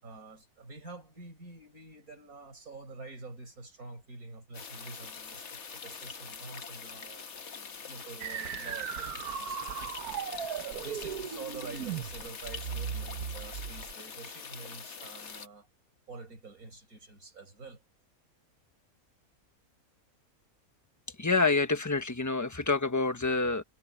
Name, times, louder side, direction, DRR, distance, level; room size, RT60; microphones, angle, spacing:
voice 1, 0.0-9.6 10.8-15.7 16.1-17.8, right 3 dB, 70° right, 5.7 m, -47 dB
sound 1, 4.5-15.5, left 6 dB, 50° left, 1.5 m, -44 dB
sound 2, 8.2-13.9, right 8 dB, 85° right, 1.4 m, -37 dB
voice 2, 21.2-23.6, left 3 dB, 10° left, 1.3 m, -27 dB
omnidirectional pair, 1.6 m